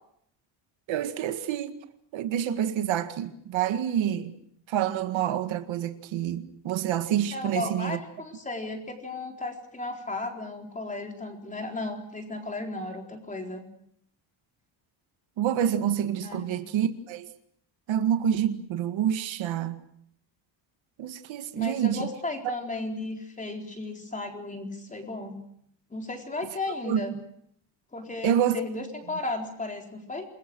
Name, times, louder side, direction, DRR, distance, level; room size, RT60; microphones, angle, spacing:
voice 1, 0.9-1.7 2.1-4.3 4.7-8.0 15.4-17.3 17.9-19.8 21.0-22.1 26.9-27.0 28.2-28.6, right 10 dB, 80° right, 2.0 m, -27 dB
voice 2, 7.3-13.7 16.2-16.5 21.5-25.4 25.9-27.1 27.9-30.3, left 2 dB, 15° left, 4.1 m, -35 dB
28.0 x 22.0 x 6.3 m
cardioid pair, 175°, 45 cm